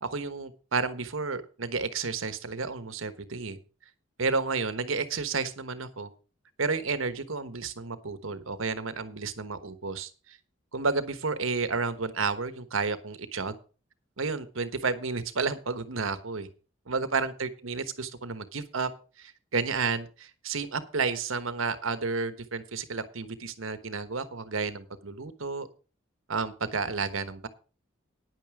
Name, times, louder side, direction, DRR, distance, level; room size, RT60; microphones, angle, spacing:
voice 1, 0.0-3.6 4.2-6.1 6.6-10.4 10.7-13.5 14.2-16.5 16.9-18.9 19.2-25.7 26.3-27.5, right 4 dB, 80° right, 12 dB, 1.2 m, -31 dB
10.0 x 9.3 x 4.9 m, 0.36 s
head